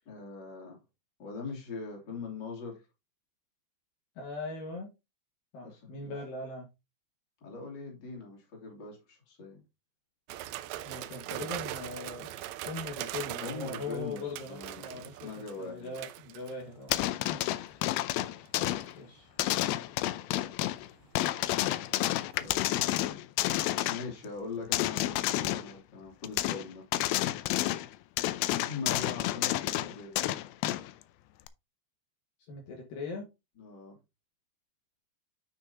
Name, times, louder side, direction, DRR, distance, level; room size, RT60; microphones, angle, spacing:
voice 1, 0.0-0.8 1.2-2.9 5.6-6.1 7.4-9.6 13.4-15.9 22.4-23.2 23.9-26.9 28.7-30.2 33.6-34.0, left 4 dB, 30° left, 2.9 m, -42 dB
voice 2, 4.2-4.9 5.5-6.7 10.8-12.3 12.7-15.3 15.6-17.1 18.6-19.3 28.4-28.7 32.5-33.3, left 3 dB, 65° left, 3.0 m, -40 dB
sound 1, 10.3-17.0 17.4-17.7 18.5-18.9 21.1-22.7 23.0-23.1, right 14 dB, 80° right, 2.5 m, -41 dB
sound 2, 16.9-18.9 19.4-20.9 21.2-24.1 24.7-25.7 26.2-26.7 26.9-27.9 28.2-30.9 31.5-31.6, left 15 dB, 85° left, 2.1 m, -30 dB
9.6 x 5.9 x 2.8 m
omnidirectional pair, 4.8 m